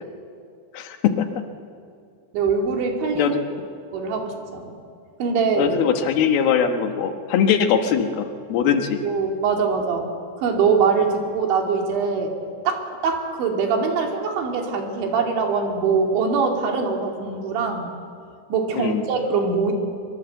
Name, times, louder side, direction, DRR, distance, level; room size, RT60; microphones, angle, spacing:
voice 1, 0.7-1.3 3.2-3.4 5.6-9.0 18.8-19.0, left 7 dB, 70° left, 6 dB, 2.8 m, -21 dB
voice 2, 2.3-3.3 3.9-4.7 5.2-5.7 9.0-10.1 10.4-12.3 12.7-17.9 18.5-19.7, right 5 dB, 80° right, 2 dB, 4.8 m, -23 dB
23.5 x 23.0 x 7.9 m, 2.3 s
omnidirectional pair, 5.3 m